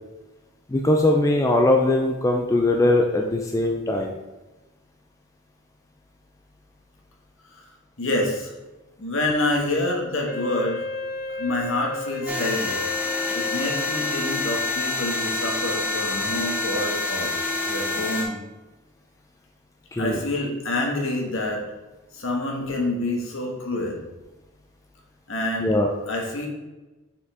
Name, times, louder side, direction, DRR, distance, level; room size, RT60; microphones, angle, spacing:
voice 1, 0.7-4.1 19.9-20.2 25.6-25.9, left 1 dB, 15° left, 2 dB, 0.4 m, -20 dB
voice 2, 8.0-8.5 9.0-10.8 11.4-12.8 13.3-17.3 17.7-18.4 20.0-21.6 22.1-24.0 25.3-25.8 26.1-26.5, left 2 dB, 65° left, 1 dB, 1.4 m, -27 dB
Wind instrument woodwind instrument, 10.3-14.5, left 2 dB, 45° left, 0.7 m, -34 dB
sound 1, 12.3-18.2, left 3 dB, 5° right, 1.0 m, -27 dB
6.7 x 4.7 x 3.6 m, 1.1 s
head